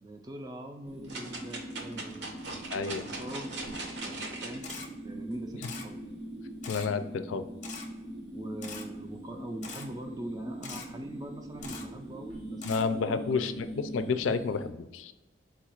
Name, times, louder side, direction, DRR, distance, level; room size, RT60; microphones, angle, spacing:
voice 1, 0.0-2.5 2.8-3.5 4.0-4.8 5.0-6.0 8.3-13.6, right 1 dB, 20° right, 4 dB, 0.3 m, -42 dB
sound 1, 0.8-14.7, right 1 dB, 85° right, 1.0 m, -42 dB
sound 2, 1.1-4.8 5.3-5.4, right 2 dB, 65° right, 0.8 m, -40 dB
voice 2, 2.7-3.0 6.7-7.5 12.6-15.1, left 5 dB, 90° left, 9 dB, 0.4 m, -30 dB
Camera, 4.6-4.9 5.6-5.9 6.6-6.9 7.6-7.9 8.6-8.8 9.6-9.9 10.6-10.9 11.6-11.8 12.6-12.8, left 5 dB, 40° left, 0.6 m, -42 dB
4.5 x 2.4 x 4.4 m, 1.1 s
head